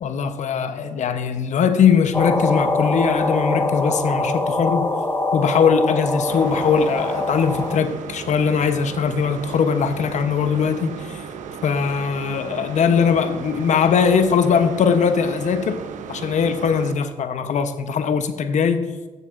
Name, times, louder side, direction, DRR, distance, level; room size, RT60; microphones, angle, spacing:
voice 1, 0.0-4.9 5.3-11.2 11.6-15.8 16.1-18.9, left 6 dB, 65° left, 9 dB, 0.9 m, -20 dB
sound 1, 2.1-7.8, left 2 dB, 15° left, 1.4 m, -23 dB
sound 2, 6.3-16.9, right 7 dB, 70° right, 0.8 m, -35 dB
15.5 x 6.7 x 2.6 m, 1.3 s
supercardioid pair, 50°, 13 cm